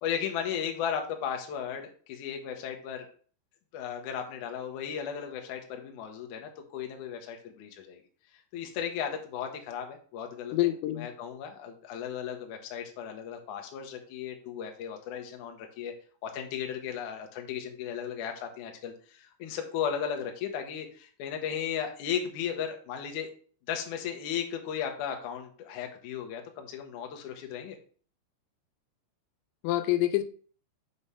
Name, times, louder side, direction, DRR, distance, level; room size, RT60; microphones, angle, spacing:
voice 1, 0.0-3.1 3.7-8.0 8.5-15.9 16.2-23.3 23.7-27.8, left 8 dB, 70° left, 3 dB, 1.9 m, -35 dB
voice 2, 10.5-11.1 29.6-30.2, left 15 dB, 90° left, 10 dB, 2.9 m, -26 dB
7.0 x 3.2 x 5.5 m, 0.43 s
omnidirectional pair, 4.9 m